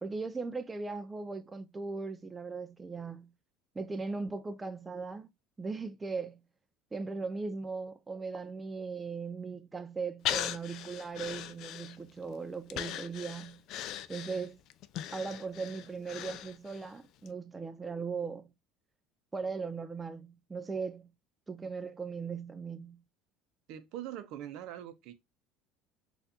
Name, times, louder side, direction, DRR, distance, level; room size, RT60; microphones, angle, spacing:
voice 1, 0.0-3.3 3.8-5.3 5.6-6.4 6.9-13.6 14.1-14.6 15.1-18.5 19.3-21.1 21.5-23.0, right 4 dB, 15° right, 0.3 m, -38 dB
Breathing, 10.2-12.2 12.7-16.9 17.3-17.4, left 11 dB, 60° left, 0.3 m, -39 dB
voice 2, 23.7-25.1, right 11 dB, 65° right, 0.6 m, -42 dB
4.1 x 2.4 x 2.6 m
supercardioid pair, 105°, 0 cm